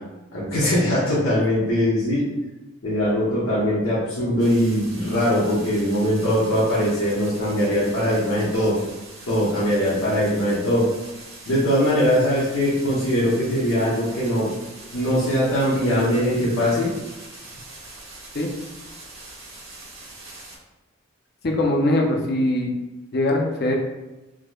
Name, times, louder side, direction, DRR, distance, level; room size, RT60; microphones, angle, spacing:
voice 1, 0.3-2.2 2.8-8.8 9.3-10.9 11.5-14.5 14.9-16.9, equal, 90° left, -9 dB, 0.9 m, -21 dB
sound 1, 4.4-20.6, right 2 dB, 70° right, 1.4 m, -42 dB
voice 2, 21.4-22.7 23.1-23.7, left 1 dB, 50° left, 1 dB, 0.5 m, -21 dB
4.7 x 2.1 x 2.2 m, 1.0 s
head